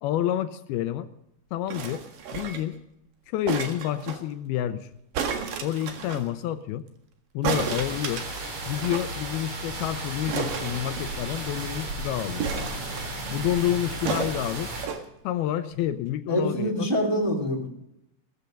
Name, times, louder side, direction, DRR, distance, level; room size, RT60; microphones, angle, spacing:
voice 1, 0.0-1.1 1.5-2.0 2.3-2.8 3.3-4.9 5.6-6.9 7.3-8.2 8.7-12.5 13.3-14.7 15.2-16.9, left 12 dB, 80° left, 11 dB, 2.5 m, -29 dB
sound 1, 1.7-2.8 3.5-4.2 5.1-6.3 7.4-9.1 9.4-9.5 9.7-9.9 10.3-11.5 12.4-13.3 14.1-15.0 15.8-15.9, right 6 dB, 65° right, 3.2 m, -32 dB
sound 2, 7.5-14.9, right 2 dB, 45° right, 4.2 m, -34 dB
voice 2, 16.3-17.7, equal, 5° right, 0 dB, 2.5 m, -25 dB
17.0 x 14.5 x 5.2 m, 0.81 s
omnidirectional pair, 4.5 m